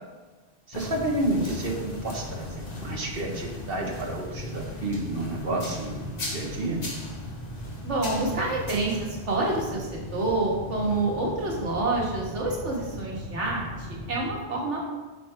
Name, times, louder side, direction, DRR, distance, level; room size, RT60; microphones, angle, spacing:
sound 1, 0.7-14.3, left 2 dB, 40° left, 1.3 m, -37 dB
voice 1, 0.7-6.0 6.3-6.8, right 1 dB, 55° right, -1 dB, 1.5 m, -30 dB
voice 2, 7.8-14.9, right 2 dB, 85° right, -3 dB, 2.0 m, -28 dB
9.0 x 5.7 x 3.5 m, 1.3 s
omnidirectional pair, 1.2 m